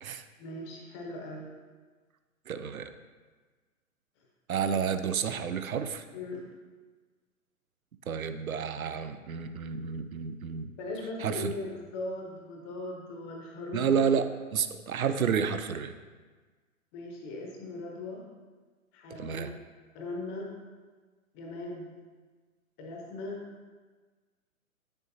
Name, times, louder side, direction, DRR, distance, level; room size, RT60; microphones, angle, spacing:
voice 1, 0.4-1.5 6.1-6.5 10.8-14.0 16.9-18.3 18.9-19.6 19.9-20.5 21.3-21.9 22.8-23.5, left 2 dB, 20° left, 0 dB, 0.8 m, -39 dB
voice 2, 2.5-2.9 4.5-6.0 8.1-10.7 11.2-11.5 13.7-14.2 14.5-15.9 19.1-19.5, right 7 dB, 75° right, 9 dB, 0.7 m, -30 dB
8.8 x 7.0 x 2.7 m, 1.4 s
figure-of-eight pair, 115°, 43 cm